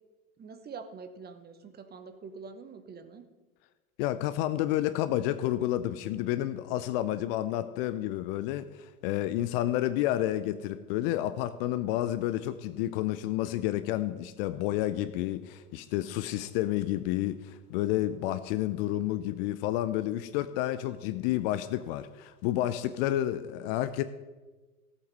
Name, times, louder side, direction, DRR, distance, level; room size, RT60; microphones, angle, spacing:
voice 1, 0.4-3.2, right 5 dB, 20° right, 10 dB, 1.0 m, -45 dB
voice 2, 4.0-24.0, left 13 dB, 40° left, 12 dB, 0.6 m, -30 dB
14.5 x 8.2 x 5.5 m, 1.3 s
hypercardioid pair, 95°, 46 cm